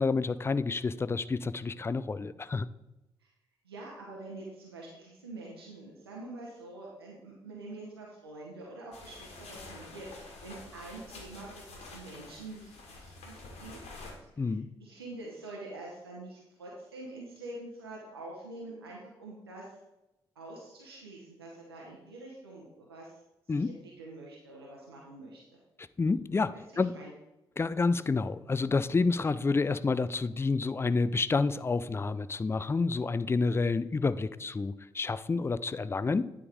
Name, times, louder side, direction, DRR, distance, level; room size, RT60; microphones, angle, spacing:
voice 1, 0.0-2.7 14.4-14.7 23.5-23.8 26.0-26.9 27.6-36.3, left 4 dB, 20° left, 16 dB, 0.4 m, -29 dB
voice 2, 3.6-14.0 14.3-19.7 20.3-23.1 23.5-25.6 26.5-27.1, right 2 dB, 90° right, -3 dB, 0.8 m, -46 dB
sound 1, 8.9-14.1, left 3 dB, 55° left, 1.7 m, -48 dB
9.6 x 3.6 x 4.8 m, 0.95 s
figure-of-eight pair, 40°, 13 cm